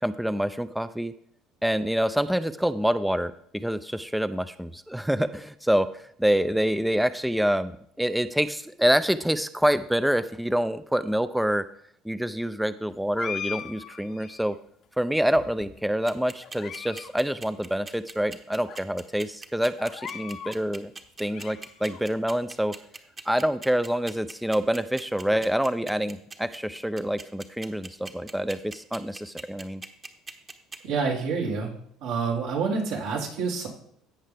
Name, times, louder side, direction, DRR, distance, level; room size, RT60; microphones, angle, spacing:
voice 1, 0.0-1.1 1.6-11.6 12.0-14.6 15.0-20.9 21.2-22.7 23.3-29.8, equal, 5° right, 12 dB, 0.4 m, -26 dB
sound 1, 13.1-14.6 15.2-15.9 16.4-17.1 17.4-17.5 18.2-18.3 18.7-18.8 19.8-20.6 21.0-22.0, left 8 dB, 55° left, 0.9 m, -39 dB
sound 2, 16.1-30.8, right 3 dB, 25° right, 1.0 m, -40 dB
voice 2, 30.8-31.7 32.0-33.7, right 5 dB, 80° right, -1 dB, 2.5 m, -27 dB
16.5 x 5.5 x 3.4 m, 0.65 s
supercardioid pair, 105°, 0 cm